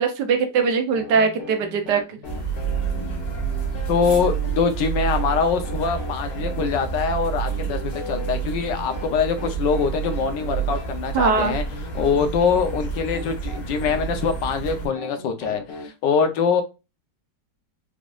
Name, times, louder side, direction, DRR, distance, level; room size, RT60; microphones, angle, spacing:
voice 1, 0.0-2.2 11.1-11.5, right 5 dB, 75° right, 1.5 m, -21 dB
sound 1, 0.9-15.9, left 4 dB, 60° left, 2.0 m, -39 dB
sound 2, 2.2-14.9, right 7 dB, 35° left, 0.8 m, -29 dB
voice 2, 3.9-11.6 12.0-16.6, left 6 dB, 90° left, 1.5 m, -23 dB
4.9 x 3.6 x 2.4 m
omnidirectional pair, 1.9 m